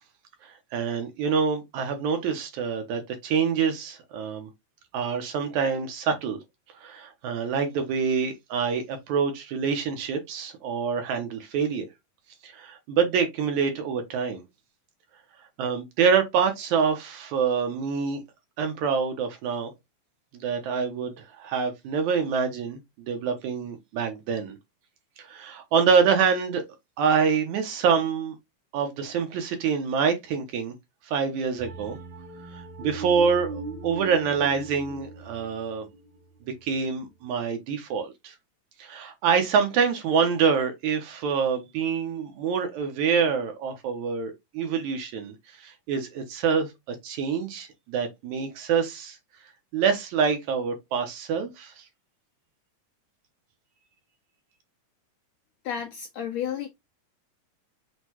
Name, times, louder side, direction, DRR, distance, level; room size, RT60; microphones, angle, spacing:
voice 1, 0.4-4.5 4.9-6.4 6.8-11.9 12.4-14.4 15.6-18.2 18.6-19.7 20.3-22.8 23.1-24.6 25.2-26.6 27.0-28.4 28.7-30.7 31.1-32.0 32.5-35.9 36.6-38.3 38.8-49.2 49.7-51.8, right 6 dB, 75° right, 2.1 m, -26 dB
sound 1, 31.6-36.8, right 3 dB, 50° right, 1.4 m, -40 dB
voice 2, 55.7-56.7, left 8 dB, 80° left, 1.6 m, -31 dB
6.3 x 2.3 x 2.9 m
omnidirectional pair, 3.7 m